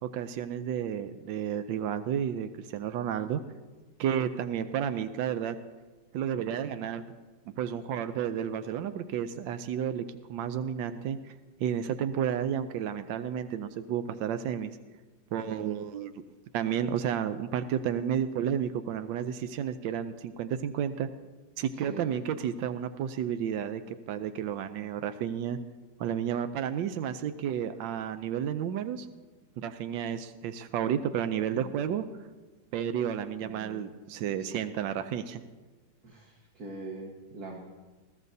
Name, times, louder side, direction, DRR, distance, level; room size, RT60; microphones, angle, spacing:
voice 1, 0.0-3.4 4.0-5.6 6.1-7.0 7.6-11.3 11.6-14.7 15.3-16.1 16.5-21.1 21.6-25.6 26.0-29.1 29.6-32.0 32.7-35.4, right 9 dB, 90° right, 10 dB, 1.3 m, -31 dB
voice 2, 31.3-31.8 33.4-33.9 34.4-34.7 36.0-37.6, right 2 dB, 55° right, 0 dB, 1.8 m, -44 dB
21.0 x 13.5 x 2.7 m, 1.3 s
omnidirectional pair, 2.0 m